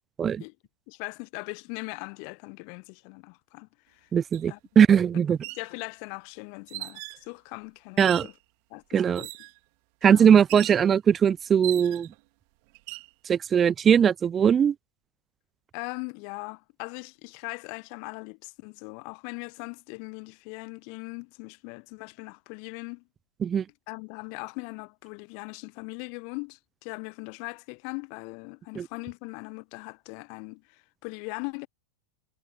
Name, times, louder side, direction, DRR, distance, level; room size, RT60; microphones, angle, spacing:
voice 1, 0.9-4.1 4.5-4.6 5.4-8.3 8.7-9.3 10.0-10.3 15.7-23.0 23.9-31.7, left 40 dB or more, 45° left, 0.9 m, -40 dB
voice 2, 4.1-5.4 8.0-8.3 8.9-9.2 10.0-12.1 13.3-14.7 23.4-23.6 28.8-28.9, right 8 dB, 25° right, 0.4 m, -20 dB
sound 1, 4.3-4.4 5.3-5.7 6.7-7.2 8.0-8.4 9.1-9.6 10.5-10.9 11.6-12.2 12.7-13.1, right 31 dB, 45° right, 2.4 m, -39 dB
figure-of-eight pair, 90°, 0 cm